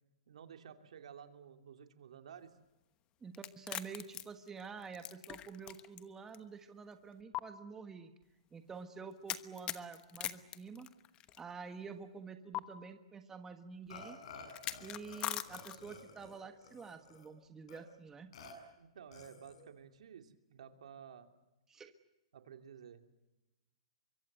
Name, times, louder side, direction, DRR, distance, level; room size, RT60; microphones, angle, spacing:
voice 1, 0.3-2.5 18.8-21.3 22.3-23.0, right 8 dB, 75° right, 7 dB, 2.7 m, -53 dB
voice 2, 3.2-8.1 8.5-10.9 11.4-14.2 14.8-18.3 21.7-21.9, right 5 dB, 10° right, 8 dB, 1.4 m, -48 dB
sound 1, 3.3-6.0 6.3-6.4 7.3-7.4 9.3-11.4 12.5-12.6 14.5-16.0, left 13 dB, 25° left, 1.1 m, -41 dB
Burping eructation, 13.9-15.2 15.5-17.3 17.7-17.8 18.3-18.5 19.1-19.6, left 4 dB, 65° left, 7.1 m, -53 dB
25.5 x 23.5 x 8.0 m, 0.98 s
hypercardioid pair, 145°, 4 cm